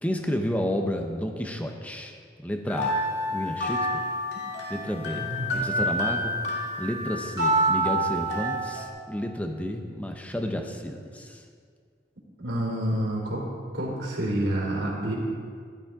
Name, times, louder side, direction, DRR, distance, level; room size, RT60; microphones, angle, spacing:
voice 1, 0.0-2.1 2.4-4.0 4.7-6.4 6.8-11.4, equal, 10° left, 3 dB, 0.9 m, -31 dB
sound 1, 2.7-8.9, right 1 dB, 70° left, 2.2 m, -27 dB
voice 2, 5.1-5.6 12.4-13.5 13.7-15.2, right 1 dB, 80° right, -3 dB, 3.5 m, -28 dB
15.0 x 12.5 x 3.7 m, 2.1 s
head